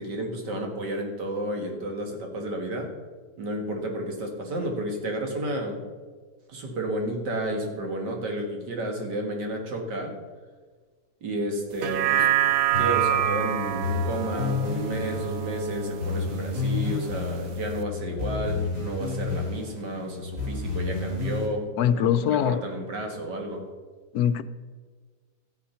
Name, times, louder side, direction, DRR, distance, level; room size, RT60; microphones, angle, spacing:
voice 1, 0.0-2.9 3.4-5.8 6.5-10.2 11.2-12.3 12.8-23.7, right 1 dB, 90° right, 3 dB, 2.5 m, -31 dB
sound 1, 11.7-16.3 16.7-16.8, right 12 dB, 65° right, 1.0 m, -26 dB
sound 2, 12.7-21.5, left 3 dB, 50° right, 3.7 m, -31 dB
voice 2, 21.8-22.6 24.1-24.4, left 9 dB, 70° left, 11 dB, 1.0 m, -22 dB
14.0 x 8.5 x 5.7 m, 1.5 s
omnidirectional pair, 1.8 m